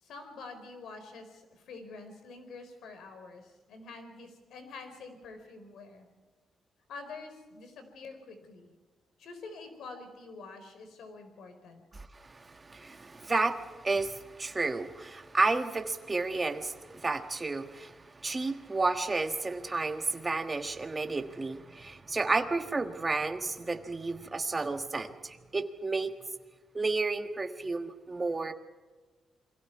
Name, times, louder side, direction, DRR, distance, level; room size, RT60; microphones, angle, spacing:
voice 1, 0.0-6.1 6.9-8.7 9.2-11.8, left 3 dB, 80° left, 7 dB, 4.5 m, -47 dB
voice 2, 11.9-26.1 26.7-28.5, right 3 dB, 20° right, 7 dB, 1.5 m, -32 dB
28.5 x 22.5 x 4.7 m, 1.3 s
cardioid pair, 145°, 0 cm